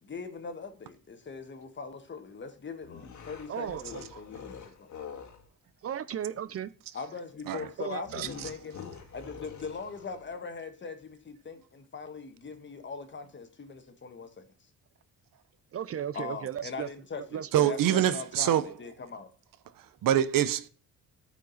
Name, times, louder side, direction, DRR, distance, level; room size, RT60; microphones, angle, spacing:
voice 1, 0.0-4.9 6.9-8.8 9.1-14.3 16.1-19.3, left 5 dB, 35° left, 1.4 m, -41 dB
sound 1, 2.8-5.5 8.1-10.4, left 6 dB, 60° left, 1.8 m, -45 dB
voice 2, 3.5-3.8 5.8-6.7 7.8-8.2 15.7-16.9 17.3-17.7, right 9 dB, 45° right, 0.5 m, -35 dB
voice 3, 8.2-8.5 17.5-18.7 19.8-20.7, right 11 dB, 85° right, 0.8 m, -26 dB
9.0 x 5.1 x 4.0 m
cardioid pair, 125°, 32 cm